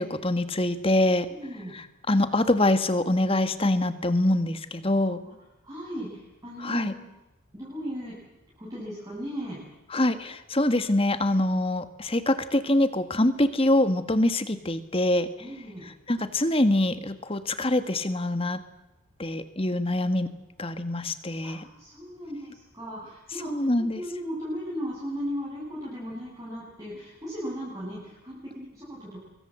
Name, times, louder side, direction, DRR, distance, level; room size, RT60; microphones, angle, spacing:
voice 1, 0.0-1.3 1.7-5.2 6.6-6.9 9.9-15.3 15.8-18.6 19.2-20.3 20.6-21.6 23.3-24.0, left 1 dB, 25° left, 11 dB, 1.6 m, -25 dB
voice 2, 1.4-1.8 5.2-5.4 5.6-7.1 7.5-8.1 8.6-9.6 15.4-15.9 21.4-23.6 23.9-29.2, equal, 15° right, -7 dB, 7.3 m, -36 dB
25.5 x 23.0 x 7.7 m, 0.96 s
head